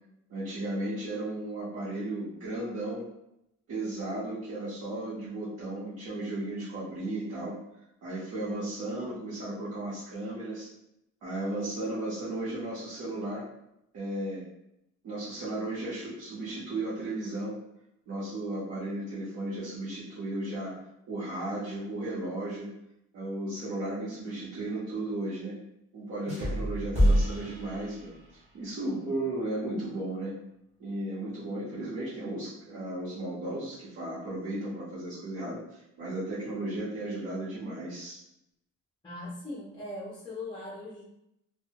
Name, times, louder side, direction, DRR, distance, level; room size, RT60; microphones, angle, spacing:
voice 1, 0.3-3.0 3.7-7.5 8.0-10.7 11.2-13.4 13.9-14.4 15.0-17.5 18.1-20.7 21.1-22.7 23.1-25.5 25.9-28.1 28.5-30.3 30.8-38.2, right 1 dB, 50° right, -10 dB, 0.9 m, -35 dB
Ba-dum tss, 26.3-28.5, equal, 20° right, 0.7 m, -27 dB
voice 2, 39.0-41.0, left 2 dB, 15° left, -8 dB, 0.5 m, -40 dB
2.7 x 2.2 x 2.8 m, 0.81 s
cardioid pair, 180°, 31 cm